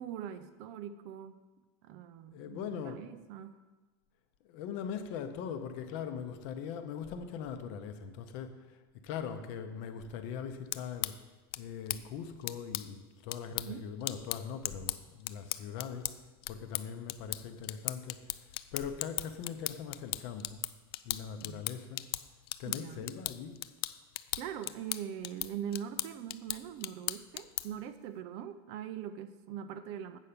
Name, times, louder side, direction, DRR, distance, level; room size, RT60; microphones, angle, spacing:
voice 1, 0.0-1.4 1.8-3.5 13.7-13.8 21.1-21.7 22.6-23.1 24.3-30.2, right 9 dB, 40° right, 11 dB, 0.4 m, -42 dB
voice 2, 2.3-3.1 4.4-11.1 11.6-16.1 16.5-20.6 21.0-22.0 22.6-23.6, left 7 dB, 45° left, 8 dB, 0.7 m, -41 dB
sound 1, 10.5-27.9, left 15 dB, 80° left, 0.4 m, -39 dB
8.1 x 5.7 x 6.7 m, 1.2 s
supercardioid pair, 175°, 13 cm